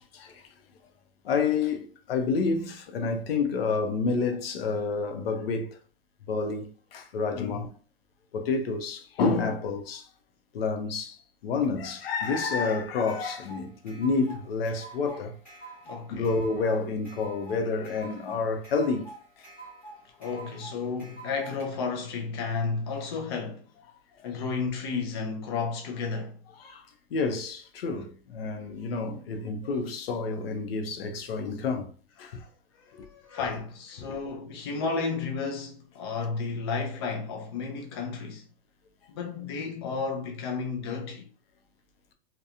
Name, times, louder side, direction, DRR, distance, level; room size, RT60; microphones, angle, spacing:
voice 1, 1.2-5.8 6.3-7.7 8.3-10.1 10.5-15.4 16.1-19.1 26.6-26.8 27.1-31.9 32.2-32.4 33.0-33.1 34.1-34.2, left 4 dB, 90° left, 0.7 m, -29 dB
sound 1, 11.6-21.6, right 3 dB, 5° left, 1.2 m, -46 dB
voice 2, 15.9-16.3 20.2-23.7 24.2-26.4 32.2-32.5 32.8-38.5 39.1-41.3, left 4 dB, 30° left, 0.3 m, -32 dB
2.8 x 2.2 x 2.4 m
supercardioid pair, 165°, 29 cm